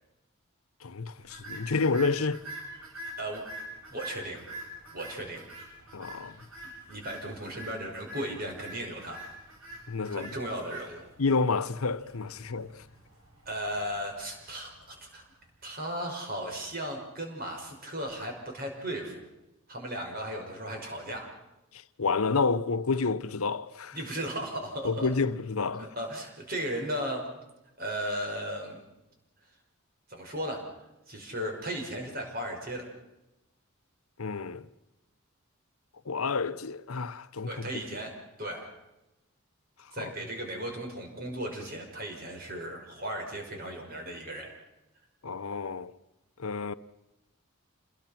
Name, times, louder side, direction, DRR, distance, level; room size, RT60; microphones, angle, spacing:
voice 1, 0.8-2.4 5.9-6.4 9.9-10.3 11.2-12.7 22.0-24.0 24.8-25.9 34.2-34.7 36.1-37.7 40.0-40.1 45.2-45.9 46.4-46.7, left 4 dB, 90° left, 0.9 m, -29 dB
sound 1, 1.2-15.5, right 1 dB, 80° right, 7.7 m, -46 dB
voice 2, 3.9-4.4 4.9-5.4 6.9-9.2 10.1-11.1 12.4-12.5 13.5-15.3 15.6-19.2 19.7-21.3 23.9-25.1 25.8-27.3 27.8-28.8 30.1-30.6 31.1-32.9 37.5-38.1 38.4-38.7 39.9-44.5, right 1 dB, 45° right, 5.7 m, -36 dB
27.5 x 21.5 x 5.9 m
head